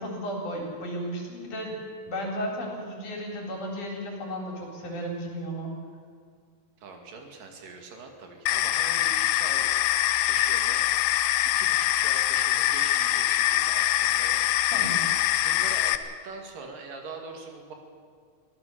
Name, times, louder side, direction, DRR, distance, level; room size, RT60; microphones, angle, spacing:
voice 1, 0.0-1.8 2.1-5.7 14.7-15.0, equal, 60° left, 0 dB, 5.2 m, -34 dB
voice 2, 6.8-9.7 10.2-14.7 15.4-15.9 16.2-17.7, right 4 dB, 75° right, 3 dB, 4.0 m, -43 dB
sound 1, 8.5-16.0, left 14 dB, 80° left, 2.3 m, -24 dB
23.5 x 17.0 x 6.9 m, 2.1 s
omnidirectional pair, 4.0 m